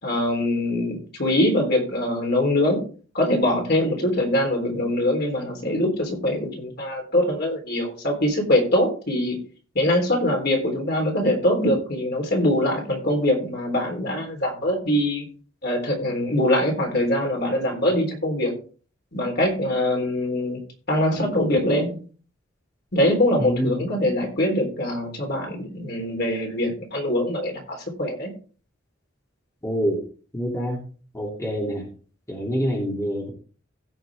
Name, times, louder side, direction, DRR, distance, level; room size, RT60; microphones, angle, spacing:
voice 1, 0.0-2.9 3.1-9.4 9.8-15.3 15.6-18.5 19.1-20.6 20.9-22.0 22.9-28.3, left 1 dB, 55° left, 2 dB, 3.6 m, -23 dB
voice 2, 23.4-23.8 29.6-30.0 30.3-30.8 31.1-31.8 32.3-33.3, equal, 15° left, -1 dB, 2.7 m, -26 dB
16.5 x 6.4 x 3.5 m, 0.39 s
head